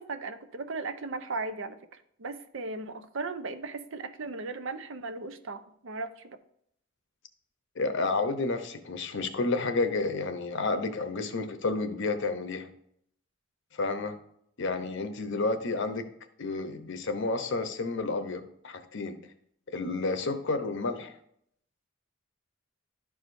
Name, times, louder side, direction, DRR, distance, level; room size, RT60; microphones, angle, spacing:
voice 1, 0.0-1.8 2.2-6.4, right 3 dB, 70° right, 10 dB, 0.7 m, -37 dB
voice 2, 7.8-12.7 13.7-14.1 14.6-16.1 16.4-19.2 19.7-21.1, left 3 dB, 65° left, 8 dB, 0.8 m, -30 dB
11.5 x 4.8 x 2.6 m, 0.70 s
head